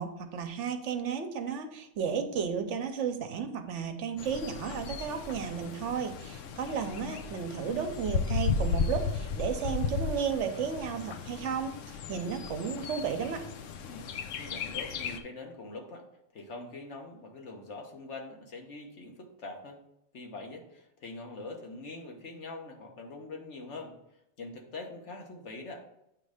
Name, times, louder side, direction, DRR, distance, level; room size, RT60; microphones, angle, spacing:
voice 1, 0.0-13.5, right 7 dB, 75° right, 7 dB, 1.0 m, -33 dB
Bird, 4.2-15.2, left 5 dB, 90° left, 1.0 m, -35 dB
voice 2, 13.8-16.1 16.3-19.8 20.1-23.9 24.4-25.8, left 3 dB, 70° left, 2 dB, 1.4 m, -43 dB
8.3 x 3.2 x 4.9 m, 0.81 s
omnidirectional pair, 1.3 m